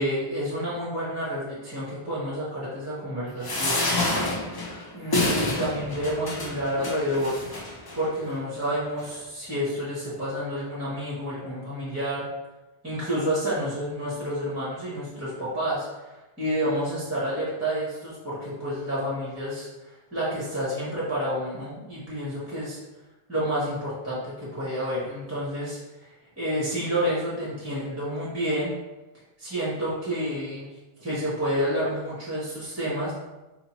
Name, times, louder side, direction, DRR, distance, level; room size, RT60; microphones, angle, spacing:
voice 1, 0.0-3.9 4.9-7.4 7.9-12.2 12.8-15.9 16.4-19.7 20.1-22.8 23.3-26.1 26.4-28.7 29.4-30.7 31.0-33.1, equal, 15° right, -8 dB, 0.8 m, -29 dB
sound 1, 3.4-8.0 8.6-8.7 9.0-9.1, left 2 dB, 30° left, 0.4 m, -28 dB
4.3 x 2.8 x 2.9 m, 1.1 s
omnidirectional pair, 1.0 m